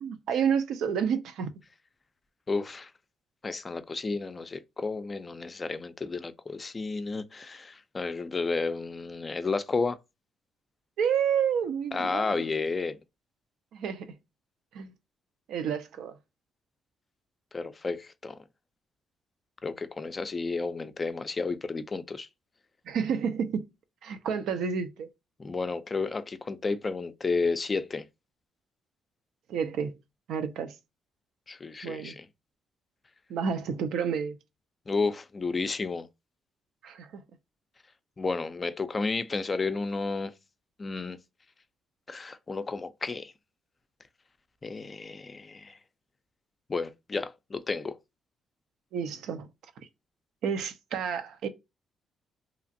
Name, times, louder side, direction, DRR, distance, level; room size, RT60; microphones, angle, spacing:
voice 1, 0.0-1.5 11.0-12.4 13.7-14.1 14.7-14.9 15.5-16.2 22.9-23.7 24.0-25.1 29.5-30.0 30.3-30.7 31.8-32.2 33.3-34.4 36.8-37.2 48.9-49.5 50.4-51.5, right 7 dB, 80° right, 0.4 m, -30 dB
voice 2, 2.5-2.9 3.4-10.0 11.9-13.0 17.5-18.4 19.6-22.3 25.4-28.1 31.5-32.3 34.9-36.1 38.2-40.3 40.8-41.2 42.1-43.3 44.6-45.8 46.7-48.0, left 4 dB, 30° left, 0.3 m, -32 dB
2.9 x 2.4 x 2.6 m
cardioid pair, 90°, 0 cm